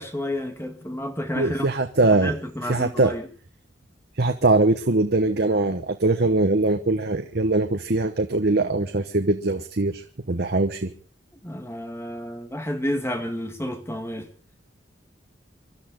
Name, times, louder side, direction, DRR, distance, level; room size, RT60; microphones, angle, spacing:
voice 1, 0.0-1.7 2.0-3.3 11.4-14.3, left 1 dB, 15° left, 2.0 m, -30 dB
voice 2, 1.3-2.3 2.6-3.1 4.2-10.0 10.3-10.9, right 2 dB, 60° right, 1.1 m, -22 dB
27.0 x 12.5 x 3.8 m
head